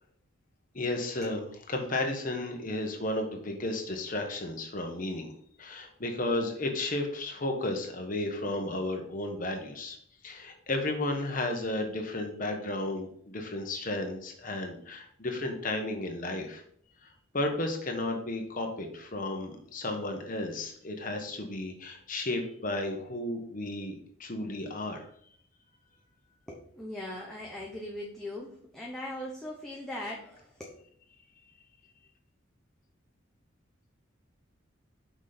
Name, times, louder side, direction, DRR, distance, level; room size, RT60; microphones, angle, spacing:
voice 1, 0.7-10.0 10.2-16.6 17.0-23.9 24.2-25.1, left 2 dB, 40° left, 3 dB, 1.1 m, -33 dB
voice 2, 26.5-30.8, left 1 dB, ahead, -3 dB, 0.8 m, -40 dB
5.9 x 5.1 x 4.3 m, 0.63 s
head